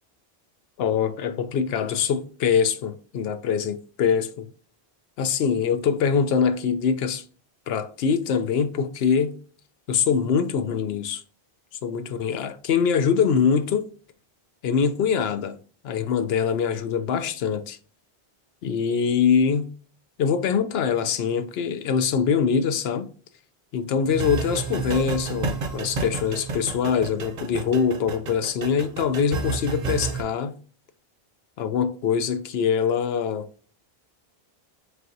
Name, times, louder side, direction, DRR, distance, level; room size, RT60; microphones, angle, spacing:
voice 1, 0.8-4.5 5.2-7.2 7.7-9.4 9.9-11.2 11.8-13.9 14.6-15.6 15.8-17.8 18.6-19.7 20.2-23.1 23.7-30.6 31.6-33.5, left 6 dB, 80° left, 0.8 m, -23 dB
sound 1, 24.1-30.2, right 5 dB, 50° right, 0.7 m, -31 dB
4.4 x 3.4 x 2.6 m
omnidirectional pair, 1.0 m